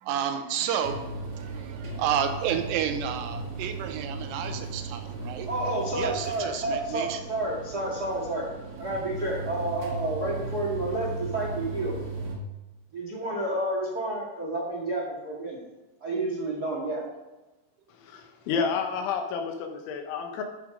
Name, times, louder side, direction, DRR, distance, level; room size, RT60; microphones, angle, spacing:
voice 1, 0.0-5.5 6.0-7.2, right 8 dB, 80° right, 6 dB, 3.4 m, -31 dB
sound 1, 0.8-12.4, right 3 dB, 45° right, 1.7 m, -37 dB
voice 2, 5.5-8.5 8.8-12.0 12.9-15.6 16.0-17.0, right 2 dB, 60° right, -2 dB, 0.9 m, -30 dB
voice 3, 18.0-20.4, left 5 dB, 75° left, 4 dB, 3.4 m, -30 dB
13.0 x 7.3 x 5.1 m, 1.1 s
omnidirectional pair, 5.7 m